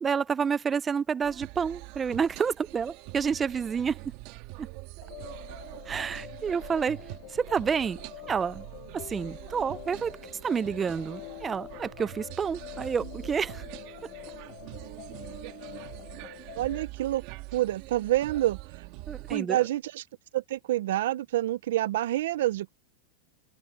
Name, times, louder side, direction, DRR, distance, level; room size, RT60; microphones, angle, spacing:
voice 1, 0.0-4.0 5.9-7.0 7.3-8.0 8.3-8.6 8.9-10.1 10.4-13.6 19.1-19.6, right 6 dB, 15° right, 0.3 m, -29 dB
sound 1, 1.2-19.4, right 21 dB, 50° right, 1.6 m, -44 dB
sound 2, 5.0-16.9, left 21 dB, 50° left, 0.9 m, -46 dB
voice 2, 16.6-17.2 17.5-18.9 19.3-20.1 20.3-22.7, right 14 dB, 80° right, 0.5 m, -28 dB
open air
supercardioid pair, 155°, 0 cm